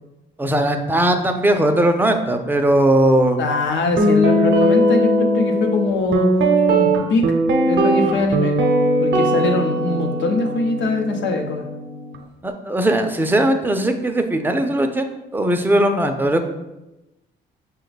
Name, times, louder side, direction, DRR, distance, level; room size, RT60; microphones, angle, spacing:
voice 1, 0.4-3.4 12.4-16.5, right 1 dB, 10° right, 5 dB, 0.5 m, -19 dB
voice 2, 3.4-6.3 6.7-7.4 7.7-8.6 9.0-11.7, left 2 dB, 70° left, 4 dB, 0.7 m, -22 dB
Guitar, 4.0-12.1, right 1 dB, 65° right, 0.7 m, -19 dB
5.8 x 2.3 x 3.9 m, 0.98 s
cardioid pair, 90°, 20 cm